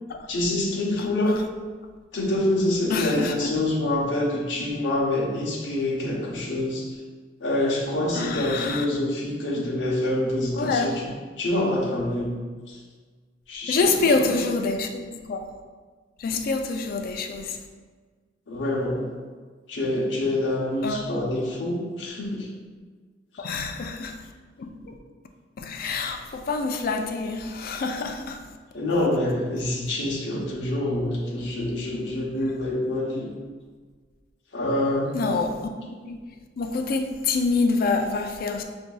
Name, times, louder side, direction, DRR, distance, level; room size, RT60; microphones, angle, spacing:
voice 1, 0.3-1.4 2.1-7.0 7.4-11.1 11.4-12.4 12.7-12.8 13.5-14.7 18.5-19.1 19.7-22.5 23.5-23.6 28.7-33.3 34.5-35.2, left 1 dB, 85° left, -4 dB, 0.8 m, -26 dB
voice 2, 2.9-3.4 8.1-8.9 10.6-11.0 13.7-15.5 16.2-17.6 20.8-21.1 23.4-24.2 24.6-25.0 25.6-28.4 35.1-36.3 36.6-38.6, left 3 dB, 55° left, 5 dB, 0.4 m, -26 dB
6.0 x 2.6 x 2.2 m, 1.5 s
head